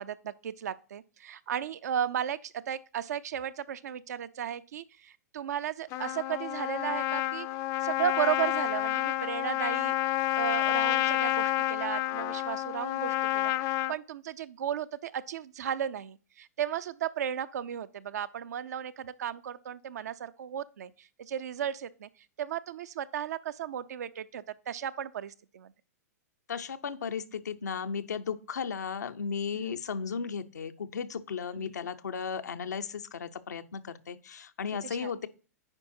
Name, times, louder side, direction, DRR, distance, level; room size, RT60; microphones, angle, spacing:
voice 1, 0.0-7.5 7.8-9.9 10.4-22.1 22.4-25.7 29.5-29.8 31.5-31.8 35.0-35.1, right 9 dB, 75° right, 0.5 m, -35 dB
Trumpet, 5.9-14.0, left 16 dB, 35° left, 0.4 m, -29 dB
voice 2, 26.5-35.3, left 6 dB, 85° left, 0.7 m, -35 dB
9.8 x 4.8 x 2.6 m
hypercardioid pair, 115°, 9 cm